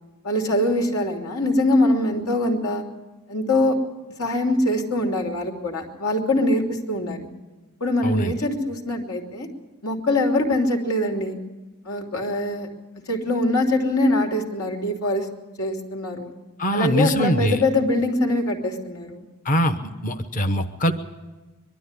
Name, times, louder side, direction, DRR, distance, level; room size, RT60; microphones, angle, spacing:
voice 1, 0.2-2.8 3.3-3.8 4.2-7.3 7.8-9.5 9.8-11.4 11.8-12.7 13.1-15.3 15.6-16.3 16.7-19.2, left 1 dB, 80° left, 2 dB, 3.1 m, -23 dB
voice 2, 8.0-8.3 16.6-17.6 19.4-19.8 20.0-20.9, equal, 35° left, 7 dB, 1.0 m, -22 dB
22.5 x 12.5 x 9.8 m, 1.2 s
head